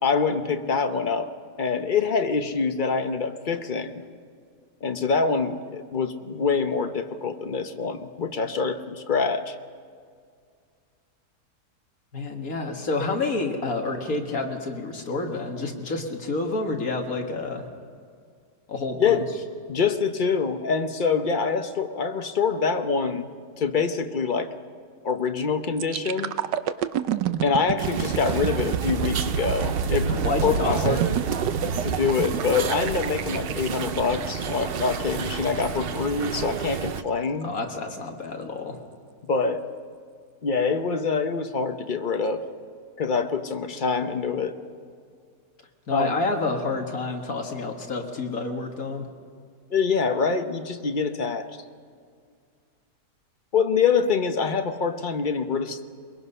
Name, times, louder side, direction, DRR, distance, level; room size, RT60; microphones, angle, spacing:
voice 1, 0.0-1.3 1.6-4.0 4.8-9.5 19.0-19.2 19.7-23.3 23.6-24.5 25.0-26.3 27.4-30.1 30.4-31.0 31.6-37.5 39.3-39.6 40.4-42.4 43.0-44.6 45.9-46.1 49.7-51.5 53.5-55.9, left 5 dB, 40° left, 7 dB, 0.8 m, -25 dB
voice 2, 12.1-17.7 18.7-19.2 30.1-31.0 37.4-38.8 45.9-49.1, left 3 dB, 55° left, 2 dB, 2.1 m, -29 dB
sound 1, 25.8-35.6 36.1-36.3, right 8 dB, 90° right, 1.3 m, -29 dB
sound 2, 27.8-37.0, right 7 dB, 60° right, 0.6 m, -31 dB
22.5 x 21.5 x 5.5 m, 2.1 s
omnidirectional pair, 1.8 m